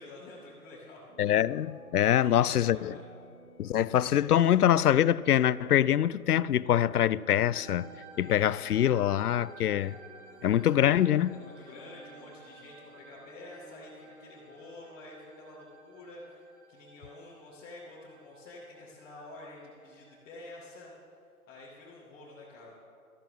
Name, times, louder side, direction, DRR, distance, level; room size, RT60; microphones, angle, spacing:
voice 1, 0.0-1.0 2.2-3.0 11.3-20.9 21.5-22.8, left 2 dB, 20° left, 2.0 m, -48 dB
sound 1, 1.1-14.8, right 2 dB, ahead, 3.4 m, -55 dB
voice 2, 1.2-2.9 3.6-7.9 8.2-10.0 10.4-11.3, left 11 dB, 80° left, 0.5 m, -24 dB
sound 2, 7.5-21.0, right 2 dB, 50° right, 1.7 m, -55 dB
18.5 x 14.0 x 3.7 m
figure-of-eight pair, 135°, 45 cm